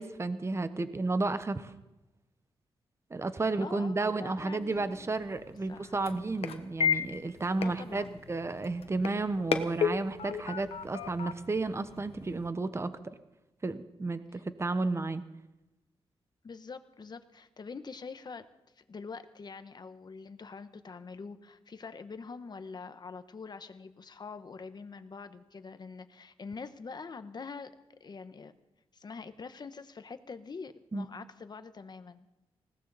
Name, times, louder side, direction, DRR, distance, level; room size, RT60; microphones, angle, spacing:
voice 1, 0.0-1.7 3.1-12.9 13.6-15.2 30.9-31.1, right 3 dB, 25° right, 12 dB, 0.9 m, -32 dB
voice 2, 3.6-5.2 5.7-6.2 7.6-8.2 14.3-14.4 16.4-18.5 18.8-27.7 28.0-28.5 28.9-32.3, left 4 dB, 45° left, 10 dB, 1.1 m, -45 dB
sound 1, 4.6-12.5, left 7 dB, 80° left, 1.2 m, -35 dB
20.0 x 17.5 x 4.1 m, 0.98 s
cardioid pair, 80°, 10 cm